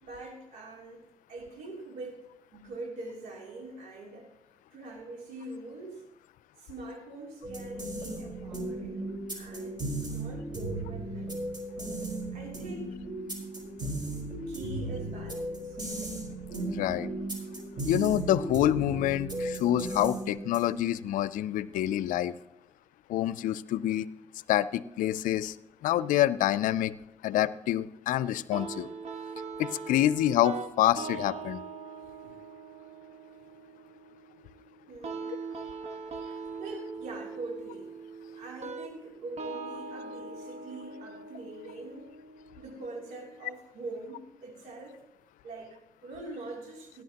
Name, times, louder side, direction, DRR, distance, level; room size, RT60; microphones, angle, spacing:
voice 1, 0.0-2.2 2.5-4.3 4.7-6.1 6.6-11.4 12.3-13.0 14.5-15.8 31.9-32.4 34.9-35.3 36.3-37.9 38.3-42.1 42.5-45.0 45.4-47.0, right 2 dB, 80° right, 0 dB, 3.1 m, -43 dB
sound 1, 7.4-20.9, right 2 dB, 35° right, 4.9 m, -36 dB
voice 2, 16.7-17.1 17.9-22.4 23.1-24.1 24.5-25.6 25.8-26.9 27.2-28.9 29.6-31.6, left 13 dB, 75° left, 17 dB, 0.5 m, -27 dB
sound 2, 28.5-43.5, right 4 dB, 50° right, 1.5 m, -42 dB
18.5 x 10.5 x 2.9 m, 0.89 s
supercardioid pair, 60°, 14 cm